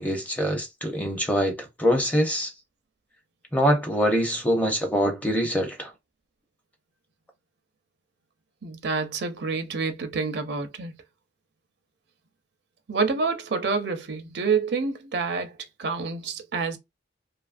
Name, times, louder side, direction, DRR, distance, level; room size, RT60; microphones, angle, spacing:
voice 1, 0.0-1.5 1.8-2.5 3.5-5.9, equal, 10° left, 0.6 m, -24 dB
voice 2, 8.6-10.9 12.9-16.8, right 4 dB, 65° right, 0.6 m, -28 dB
2.6 x 2.4 x 2.5 m
head